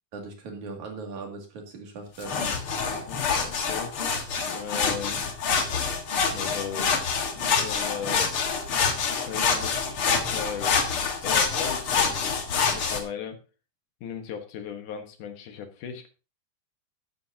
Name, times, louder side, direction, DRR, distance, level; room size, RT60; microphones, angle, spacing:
voice 1, 0.1-2.4, right 3 dB, 70° right, 2 dB, 3.9 m, -39 dB
sound 1, 2.2-13.0, left 5 dB, 50° left, 2.3 m, -26 dB
voice 2, 2.9-3.9 4.4-5.3 6.3-7.0 7.3-8.3 9.1-10.8 11.2-12.4 12.7-13.4 14.0-16.1, left 7 dB, 85° left, 6 dB, 3.0 m, -37 dB
12.5 x 12.0 x 2.8 m, 0.32 s
omnidirectional pair, 3.5 m